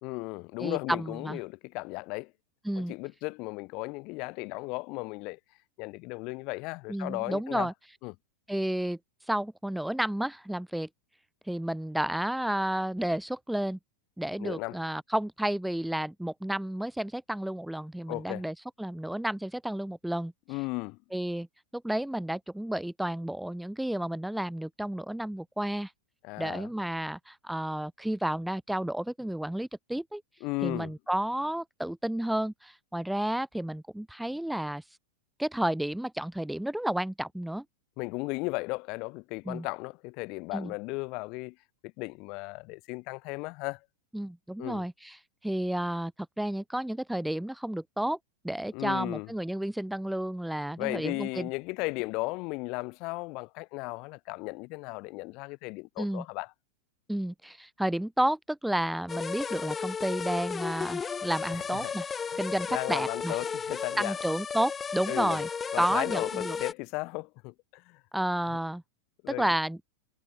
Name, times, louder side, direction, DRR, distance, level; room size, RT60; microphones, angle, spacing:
voice 1, 0.0-2.3 2.7-5.4 5.8-7.7 8.0-8.1 14.4-14.8 18.1-18.5 20.5-21.0 26.2-26.7 30.4-30.9 38.0-41.6 41.8-43.8 44.6-44.8 48.7-49.3 50.8-56.5 61.5-61.9 62.3-62.4 62.7-64.1 65.1-65.4 65.7-68.0 69.2-69.5, left 26 dB, 40° left, 2.9 m, -35 dB
voice 2, 0.6-1.4 2.6-2.9 6.9-7.7 8.5-9.0 9.3-10.9 11.5-13.8 14.2-20.3 21.1-21.5 21.7-25.9 26.4-30.2 30.6-34.8 35.4-37.6 39.4-39.7 40.5-40.7 44.1-45.2 45.4-46.1 46.4-48.2 48.4-51.5 56.0-56.2 57.1-62.1 62.4-63.4 64.0-65.5 65.8-66.6 68.1-68.8 69.3-69.8, right 1 dB, ahead, 1.6 m, -31 dB
sound 1, 59.1-66.7, left 6 dB, 20° left, 4.1 m, -34 dB
figure-of-eight pair, 90°, 0 cm